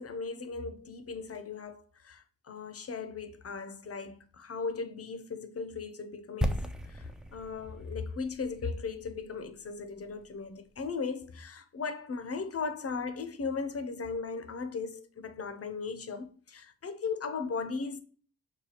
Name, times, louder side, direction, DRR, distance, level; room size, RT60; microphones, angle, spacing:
voice 1, 0.0-6.6 6.9-18.0, left 4 dB, 35° left, 0.6 m, -37 dB
sound 1, 6.4-10.3 10.6-10.7, equal, ahead, 0.3 m, -36 dB
4.8 x 2.2 x 2.8 m
cardioid pair, 55°, 40 cm